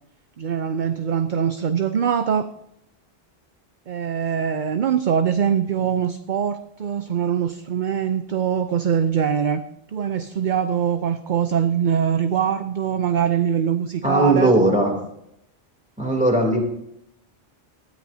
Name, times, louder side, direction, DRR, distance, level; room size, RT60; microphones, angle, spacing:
voice 1, 0.4-2.5 3.9-9.6 9.9-14.5, right 8 dB, 55° right, 10 dB, 0.7 m, -23 dB
voice 2, 14.0-14.9 16.0-16.6, right 1 dB, 5° right, 0 dB, 3.1 m, -18 dB
19.5 x 13.0 x 2.8 m, 0.78 s
omnidirectional pair, 1.0 m